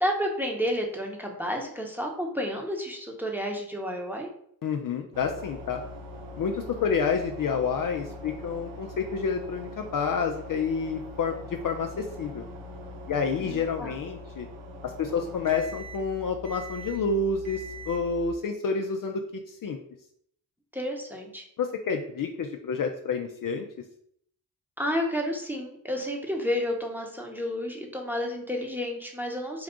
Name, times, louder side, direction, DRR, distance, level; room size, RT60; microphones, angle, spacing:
voice 1, 0.0-4.3 13.4-14.0 20.7-21.4 24.8-29.6, equal, 5° right, 1 dB, 1.0 m, -31 dB
voice 2, 4.6-5.8 6.4-11.3 11.6-12.4 13.1-14.5 14.8-19.8 21.6-23.7, left 5 dB, 50° left, 4 dB, 0.5 m, -29 dB
sound 1, 5.1-18.3, left 1 dB, 80° right, 0.7 m, -42 dB
3.8 x 2.3 x 3.7 m, 0.67 s
supercardioid pair, 40°, 44 cm